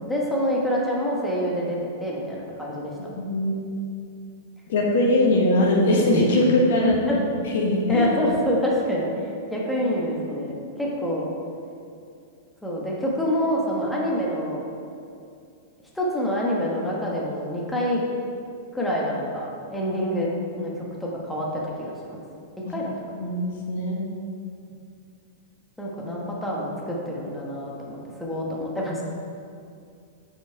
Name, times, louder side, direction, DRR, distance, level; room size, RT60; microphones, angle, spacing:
voice 1, 0.0-2.9 6.8-7.3 7.9-11.3 12.6-14.6 15.9-18.0 18.7-20.3 20.6-22.2 22.7-22.9 25.8-29.0, equal, 5° left, -4 dB, 1.2 m, -26 dB
voice 2, 3.0-3.6 4.7-7.0 7.5-8.1 22.6-22.7 23.2-24.1, left 1 dB, 70° left, -1 dB, 1.2 m, -21 dB
5.7 x 4.5 x 4.6 m, 2.4 s
hypercardioid pair, 110°, 0 cm